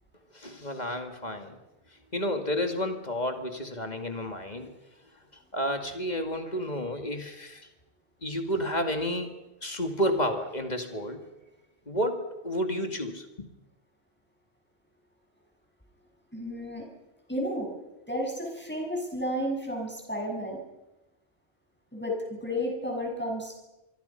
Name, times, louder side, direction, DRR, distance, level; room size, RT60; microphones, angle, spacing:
voice 1, 0.3-1.6 2.1-4.8 5.5-7.6 8.2-9.3 9.6-11.2 11.9-13.3, equal, 35° left, 6 dB, 2.4 m, -31 dB
voice 2, 16.3-16.8 17.3-17.7 18.1-20.6 21.9-23.6, equal, 10° left, 0 dB, 6.6 m, -32 dB
25.0 x 24.5 x 5.8 m, 0.99 s
omnidirectional pair, 1.3 m